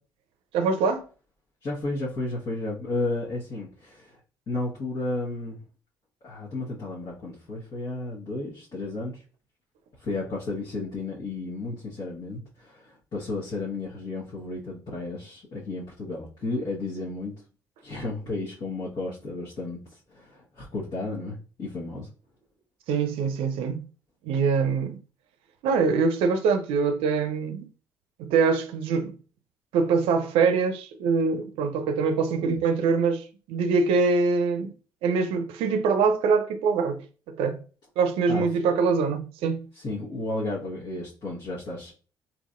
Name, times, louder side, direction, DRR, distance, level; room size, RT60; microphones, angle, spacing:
voice 1, 0.5-1.1 22.9-23.8 24.2-25.0 25.6-27.7 28.2-29.1 29.7-34.7 35.0-37.6 38.0-39.6, right 5 dB, 65° right, 0.5 m, -24 dB
voice 2, 1.6-4.2 4.5-5.6 6.2-9.2 10.0-17.3 17.8-22.1 32.4-32.6 38.3-38.4 39.7-41.9, left 2 dB, 50° left, 1.3 m, -33 dB
3.9 x 2.9 x 2.5 m
hypercardioid pair, 50°, 10 cm